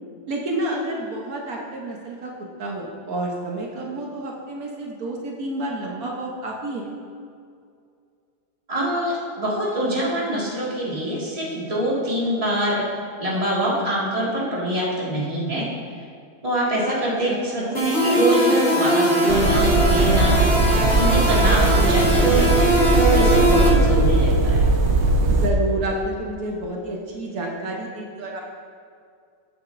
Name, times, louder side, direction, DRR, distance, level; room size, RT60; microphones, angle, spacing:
voice 1, 0.3-2.3 2.6-6.9 17.3-17.8 25.3-28.4, right 2 dB, 75° right, -2 dB, 1.4 m, -29 dB
voice 2, 8.7-12.8 13.2-15.7 16.4-20.4 21.0-22.5 23.1-24.7, equal, 25° right, -6 dB, 1.9 m, -25 dB
sound 1, 17.7-23.7, right 1 dB, 45° left, 2.6 m, -20 dB
sound 2, 19.3-25.5, right 2 dB, 55° right, 1.0 m, -19 dB
15.0 x 7.8 x 2.5 m, 2.3 s
omnidirectional pair, 1.6 m